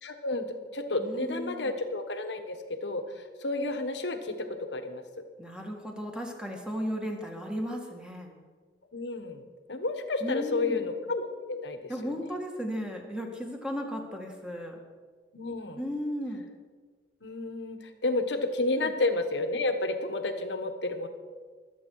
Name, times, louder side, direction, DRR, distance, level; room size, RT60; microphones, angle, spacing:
voice 1, 0.0-5.2 8.9-9.4 9.7-12.3 15.3-15.8 17.2-21.1, left 2 dB, 85° left, 7 dB, 1.4 m, -31 dB
voice 2, 1.0-1.7 5.4-8.3 10.2-10.8 11.9-14.8 15.8-16.5 18.8-18.9, equal, 5° right, 1 dB, 2.0 m, -35 dB
23.5 x 8.3 x 4.8 m, 1.5 s
head